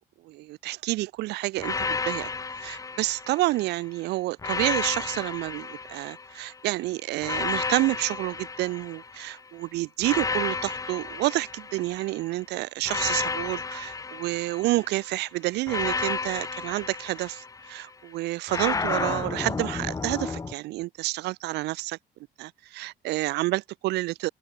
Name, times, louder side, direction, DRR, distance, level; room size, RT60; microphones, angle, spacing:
voice 1, 0.2-2.3 2.6-22.0 22.4-24.3, right 19 dB, 85° right, 1.0 m, -29 dB
sound 1, 1.6-3.7 4.4-6.5 7.2-9.4 10.0-12.2 12.8-15.0 15.7-17.8 18.5-20.5, left 4 dB, 20° left, 1.0 m, -32 dB
open air
cardioid pair, 110°, 17 cm